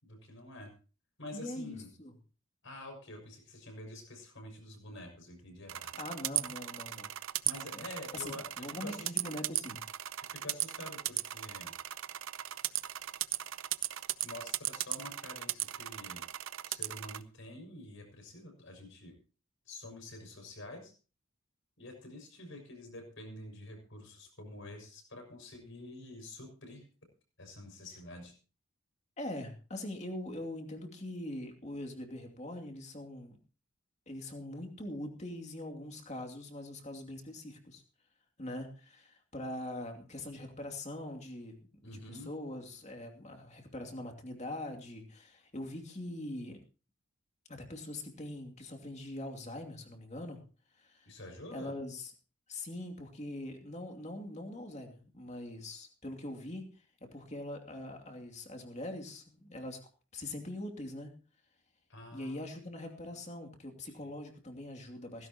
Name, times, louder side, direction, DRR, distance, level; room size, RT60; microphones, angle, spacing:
voice 1, 0.0-0.7 1.2-1.9 2.6-6.0 7.4-9.1 10.2-11.7 14.2-16.3 16.7-19.2 19.7-20.9 21.8-26.9 27.4-28.3 41.8-42.3 51.0-51.7 61.9-62.4 63.1-63.2 63.9-64.1, left 1 dB, 60° left, 3 dB, 6.2 m, -48 dB
voice 2, 1.3-2.1 6.0-7.1 7.7-7.8 8.1-9.8 29.2-33.4 34.1-37.8 38.4-41.6 41.8-46.6 47.5-50.4 50.8-51.1 51.5-52.1 52.5-56.6 57.1-59.8 60.1-61.1 62.1-65.3, left 1 dB, 30° left, 3 dB, 2.6 m, -42 dB
sound 1, 5.7-17.2, right 14 dB, 70° right, 0.7 m, -37 dB
17.5 x 15.5 x 2.9 m, 0.36 s
head